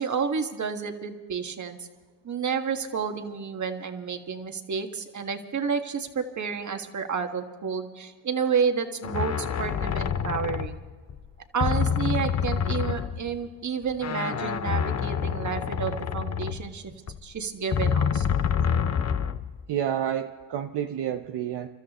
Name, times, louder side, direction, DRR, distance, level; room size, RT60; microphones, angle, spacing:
voice 1, 0.0-1.9 2.2-10.9 11.5-16.9 17.2-18.2, right 6 dB, 40° right, 5 dB, 1.7 m, -30 dB
sound 1, 9.0-11.3 11.6-13.5 13.9-17.2 17.7-19.7, left 7 dB, 35° left, 0.8 m, -27 dB
voice 2, 19.7-21.7, right 10 dB, 65° right, 5 dB, 0.9 m, -29 dB
30.0 x 13.0 x 3.1 m, 1.4 s
cardioid pair, 85°, 45 cm